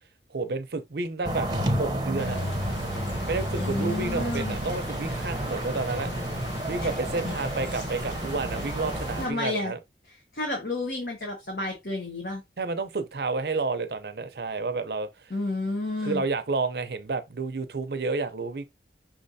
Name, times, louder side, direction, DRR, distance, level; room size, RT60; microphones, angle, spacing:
voice 1, 0.3-1.5 1.8-2.4 3.2-6.1 6.6-9.8 12.6-15.1 16.0-18.6, right 3 dB, 65° right, 0.6 m, -30 dB
sound 1, 1.2-9.3, right 1 dB, 25° right, 0.7 m, -31 dB
sound 2, 2.2-9.3, left 3 dB, 90° left, 0.8 m, -40 dB
voice 2, 3.6-4.6 6.8-6.9 7.2-7.3 9.2-9.7 10.3-12.4 15.3-16.2, left 2 dB, 60° left, 1.2 m, -31 dB
5.9 x 3.3 x 2.7 m
head